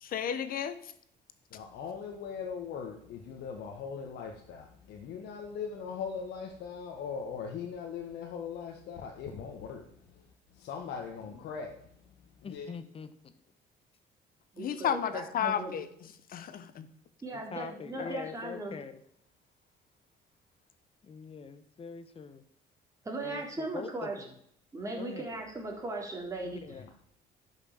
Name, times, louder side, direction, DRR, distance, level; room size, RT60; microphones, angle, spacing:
voice 1, 0.0-0.8 14.6-15.9 16.3-16.9 18.0-18.1, left 9 dB, 60° left, 12 dB, 1.2 m, -32 dB
voice 2, 1.5-12.7, left 6 dB, 75° left, 1 dB, 1.7 m, -40 dB
voice 3, 12.4-13.3 17.3-19.0 21.0-22.4 23.2-24.4 25.0-25.3 26.4-26.9, left 6 dB, 35° left, 12 dB, 1.2 m, -44 dB
voice 4, 14.5-15.7 17.2-18.7 23.0-24.2 24.7-26.6, right 2 dB, 20° right, 0 dB, 3.8 m, -38 dB
11.0 x 6.6 x 7.6 m, 0.69 s
cardioid pair, 110°, 17 cm